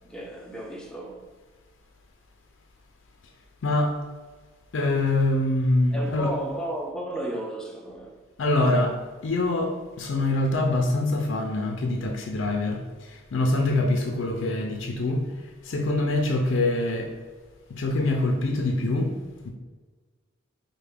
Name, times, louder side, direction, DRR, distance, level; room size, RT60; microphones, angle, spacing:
voice 1, 0.0-1.3 5.9-8.2, right 1 dB, 5° left, 0.4 m, -34 dB
voice 2, 3.6-4.0 4.7-6.4 8.4-17.2 17.7-19.2 19.4-19.5, left 2 dB, 65° left, 0.4 m, -25 dB
4.4 x 2.1 x 3.4 m
head